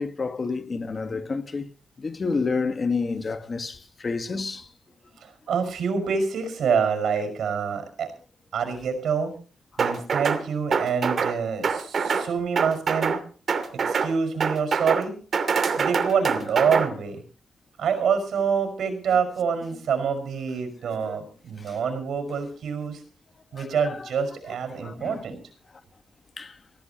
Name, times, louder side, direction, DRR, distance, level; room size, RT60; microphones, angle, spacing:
voice 1, 0.0-1.7 2.0-4.7 15.7-15.9 21.0-21.2 21.6-21.8 23.5-24.1 24.7-25.3 26.4-26.6, left 4 dB, 35° left, 1.6 m, -30 dB
voice 2, 5.2-8.1 8.5-9.3 9.8-13.2 13.7-15.1 15.8-17.2 17.8-23.0 23.5-25.4, right 6 dB, 80° right, 5.6 m, -26 dB
sound 1, 9.8-10.4 10.7-11.4 11.6-12.3 12.6-13.2 13.5-14.1 14.4-15.0 15.3-16.9, right 5 dB, 55° right, 2.7 m, -24 dB
23.0 x 15.5 x 3.0 m
cardioid pair, 110°, 0 cm